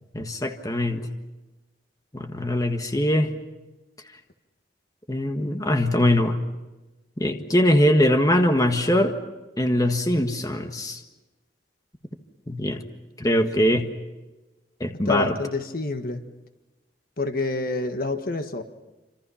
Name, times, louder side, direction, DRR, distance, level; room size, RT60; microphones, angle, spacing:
voice 1, 0.1-1.1 2.1-3.3 5.1-6.4 7.2-9.2 9.6-11.0 12.5-12.8 13.2-13.9 14.8-15.3, left 1 dB, 20° left, 5 dB, 1.6 m, -22 dB
voice 2, 15.0-16.2 17.2-18.6, left 3 dB, 55° left, 7 dB, 1.6 m, -27 dB
28.0 x 26.5 x 5.8 m, 1.1 s
head